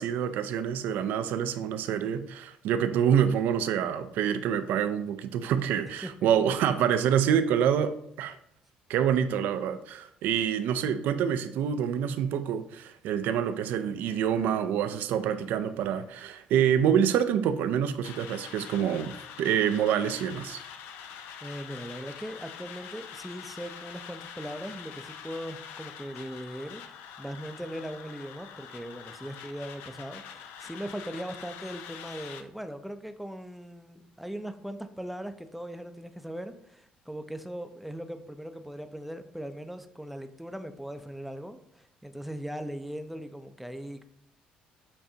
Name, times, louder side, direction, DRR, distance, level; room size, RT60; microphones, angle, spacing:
voice 1, 0.0-7.9 8.2-8.4 8.9-20.6, right 8 dB, 75° right, 11 dB, 0.4 m, -26 dB
sound 1, 18.0-32.4, left 8 dB, 80° left, 0.4 m, -45 dB
voice 2, 21.4-44.0, equal, ahead, 8 dB, 0.5 m, -39 dB
6.9 x 2.6 x 2.7 m, 0.71 s
supercardioid pair, 75°, 3 cm